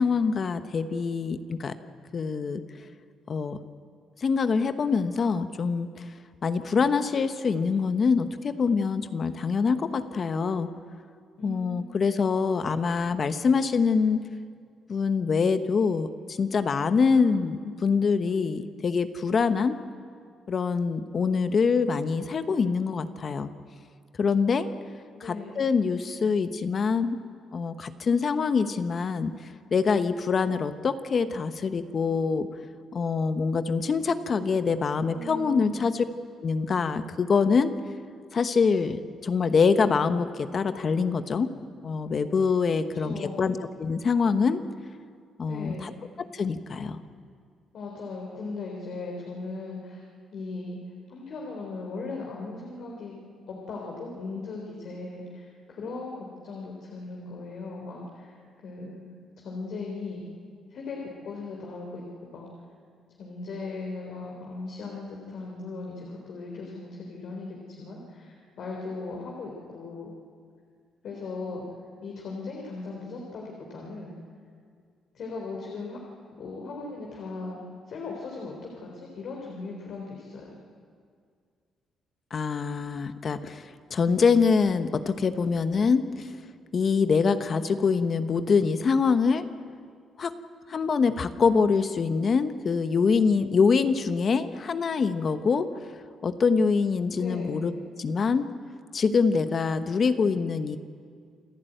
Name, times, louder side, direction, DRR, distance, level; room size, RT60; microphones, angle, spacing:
voice 1, 0.0-1.7 2.1-2.6 3.3-3.6 4.2-6.0 6.4-10.7 11.4-14.2 14.9-19.8 20.5-23.5 24.2-24.7 25.2-27.2 27.5-32.5 32.9-36.0 36.4-37.7 38.3-41.5 41.8-44.6 45.4-45.9 46.3-47.0 82.3-86.3 86.7-89.4 90.2-90.3 90.7-95.7 96.2-97.7 98.0-98.5 98.9-100.8, left 5 dB, 45° left, 10 dB, 1.1 m, -25 dB
voice 2, 11.4-11.9 25.1-25.7 35.1-35.9 42.9-43.5 45.4-45.9 47.7-50.0 50.3-50.8 51.1-53.1 53.5-58.4 58.6-59.0 59.4-60.3 60.7-62.5 63.2-70.1 71.0-71.7 72.0-74.1 75.1-76.0 76.4-77.6 77.9-80.6 97.1-97.7, left 3 dB, 65° left, -1 dB, 3.9 m, -38 dB
28.0 x 12.0 x 9.2 m, 2.1 s
cardioid pair, 90°, 0 cm